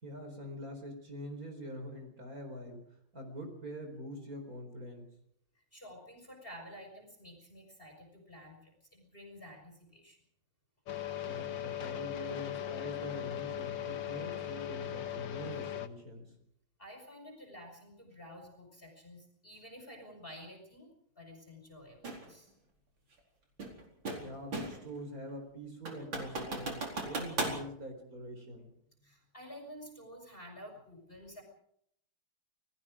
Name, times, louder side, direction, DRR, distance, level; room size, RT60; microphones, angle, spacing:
voice 1, 0.0-5.1 11.2-16.3 24.2-28.7, equal, 40° right, 4 dB, 4.7 m, -44 dB
voice 2, 5.6-10.2 16.8-20.9 21.2-22.5 29.0-31.4, equal, 25° left, 1 dB, 5.5 m, -51 dB
sound 1, 10.9-15.9, left 11 dB, 65° left, 1.9 m, -39 dB
sound 2, 22.0-22.3 23.6-24.9 25.3-25.4 25.9-27.6, right 2 dB, 65° right, 5.2 m, -37 dB
28.5 x 19.5 x 5.0 m, 0.70 s
omnidirectional pair, 2.3 m